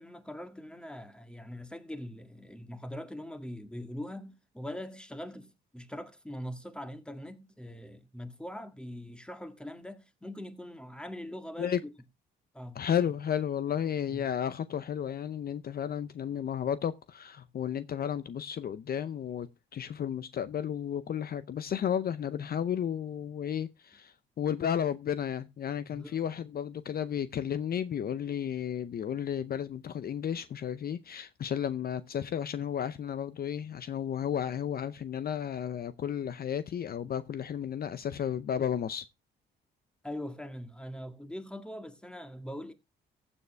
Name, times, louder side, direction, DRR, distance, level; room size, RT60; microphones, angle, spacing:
voice 1, 0.0-11.8 12.5-12.8 14.1-14.3 25.9-26.2 40.0-42.7, left 1 dB, 5° left, 1.7 m, -42 dB
voice 2, 12.7-39.1, left 9 dB, 50° left, 0.6 m, -33 dB
15.0 x 7.0 x 3.4 m
cardioid pair, 90°, 20 cm